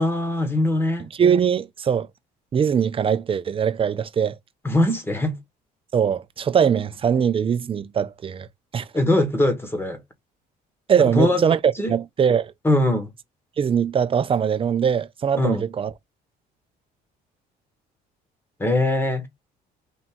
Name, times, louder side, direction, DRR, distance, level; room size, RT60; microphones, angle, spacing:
voice 1, 0.0-1.1 4.6-5.4 8.9-10.0 11.1-11.4 11.8-11.9 12.6-13.1 15.4-15.6 18.6-19.3, left 1 dB, 15° left, 1.4 m, -21 dB
voice 2, 1.2-2.1 2.5-4.4 5.9-8.5 8.7-8.9 10.9-12.5 13.6-15.9, right 7 dB, 35° right, 0.5 m, -21 dB
3.6 x 2.8 x 4.3 m
cardioid pair, 110°, 17 cm